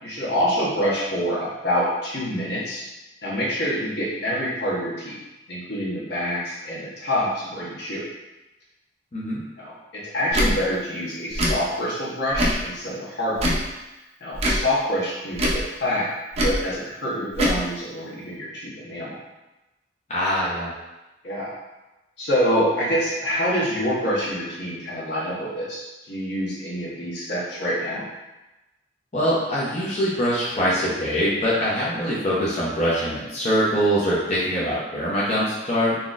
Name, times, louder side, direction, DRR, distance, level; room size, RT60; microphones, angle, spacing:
voice 1, 0.0-2.8 3.2-5.2 5.5-8.1 9.6-13.5 14.2-16.1 16.4-19.2 21.2-21.5 22.2-28.0, equal, 70° left, -6 dB, 1.0 m, -26 dB
Tick / Tick-tock, 10.3-10.5 11.3-11.6 12.3-12.6 13.3-13.7 14.3-14.6 15.3-15.6 16.3-16.6 17.3-17.6, equal, 35° right, 0.5 m, -22 dB
voice 2, 20.1-20.7 29.1-36.0, equal, 40° left, -8 dB, 0.7 m, -23 dB
3.9 x 2.8 x 2.4 m, 1.0 s
head